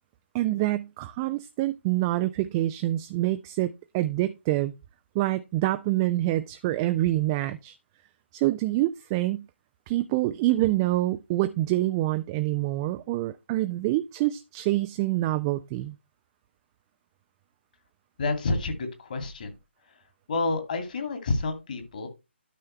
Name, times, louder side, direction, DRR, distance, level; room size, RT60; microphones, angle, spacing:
voice 1, 0.3-4.7 5.1-7.8 8.3-9.5 9.9-15.9, right 16 dB, 20° right, 0.3 m, -26 dB
voice 2, 18.2-19.5 20.3-22.1, left 3 dB, 45° left, 2.4 m, -29 dB
12.0 x 5.6 x 3.2 m
figure-of-eight pair, 140°, 6 cm